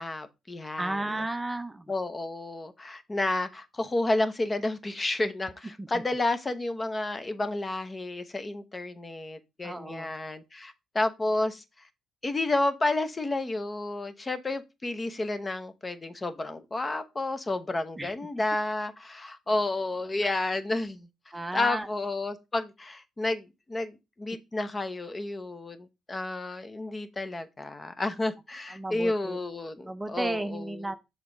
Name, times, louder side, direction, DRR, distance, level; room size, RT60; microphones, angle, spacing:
voice 1, 0.0-1.2 1.9-11.6 12.2-21.1 21.5-30.9, left 2 dB, 25° left, 0.9 m, -31 dB
voice 2, 0.8-1.9 5.8-6.0 9.6-10.1 18.0-18.1 20.2-20.3 21.3-21.9 28.7-29.4 29.8-31.0, right 2 dB, 15° right, 0.6 m, -33 dB
6.8 x 4.0 x 5.1 m
cardioid pair, 90°, 0 cm